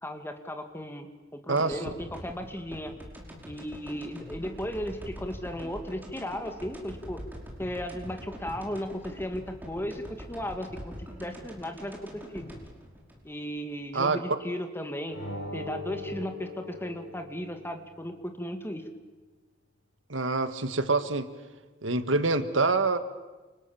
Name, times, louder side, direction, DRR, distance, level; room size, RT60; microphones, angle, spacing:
voice 1, 0.0-1.1 1.3-2.9 3.4-7.2 7.6-12.5 13.2-15.2 15.5-18.9, equal, 10° left, 6 dB, 2.4 m, -36 dB
sound 1, 1.6-13.8 14.2-14.3, equal, 10° right, 5.3 m, -44 dB
sound 2, 15.1-17.8, left 2 dB, 70° left, 5.4 m, -40 dB
voice 2, 20.1-21.3 21.8-23.0, right 3 dB, 85° right, 10 dB, 1.8 m, -26 dB
29.0 x 28.5 x 7.3 m, 1.2 s
head